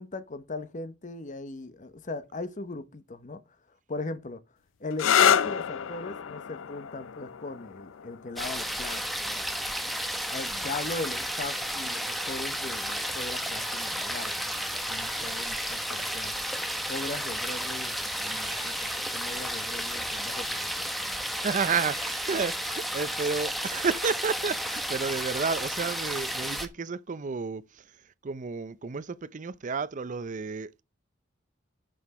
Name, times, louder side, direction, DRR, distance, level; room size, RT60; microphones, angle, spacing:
voice 1, 0.0-3.4 3.9-4.4 4.8-9.4 10.3-16.3 16.9-21.2, left 2 dB, 40° left, 0.9 m, -39 dB
sound 1, 4.9-12.4 13.4-13.9 17.4-17.7, left 8 dB, 80° left, 0.5 m, -30 dB
sound 2, 8.4-26.7, equal, ahead, 1.2 m, -32 dB
sound 3, 18.3-20.0 21.4-23.4, right 3 dB, 20° right, 2.7 m, -49 dB
voice 2, 21.4-30.8, right 5 dB, 40° right, 0.5 m, -31 dB
9.9 x 6.0 x 4.8 m
head